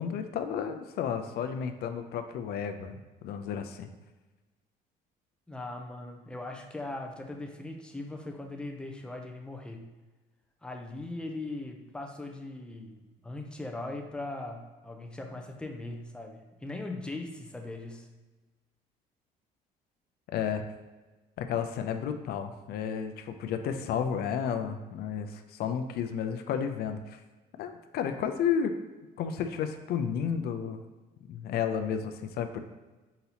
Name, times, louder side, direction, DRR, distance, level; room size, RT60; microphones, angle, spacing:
voice 1, 0.0-3.9 20.3-20.6 21.4-27.2 27.6-28.7 29.2-30.8 31.3-32.6, left 7 dB, 70° left, 7 dB, 0.5 m, -32 dB
voice 2, 5.5-9.9 10.6-18.1, left 2 dB, 5° left, 2 dB, 0.6 m, -40 dB
4.0 x 4.0 x 2.9 m, 1.2 s
cardioid pair, 110°, 17 cm